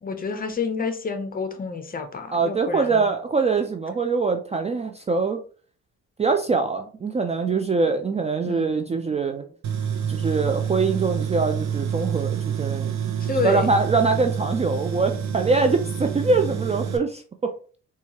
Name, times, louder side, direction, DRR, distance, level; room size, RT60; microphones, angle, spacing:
voice 1, 0.0-3.1 8.4-8.8 13.2-13.7 16.3-16.4, left 4 dB, 30° left, 6 dB, 0.7 m, -29 dB
voice 2, 2.3-5.4 6.2-9.4 10.1-12.9 13.4-17.5, right 4 dB, 20° right, 5 dB, 0.3 m, -23 dB
Tools, 9.6-17.0, right 7 dB, 65° right, 0.7 m, -28 dB
4.3 x 2.4 x 2.9 m, 0.40 s
cardioid pair, 90°, 30 cm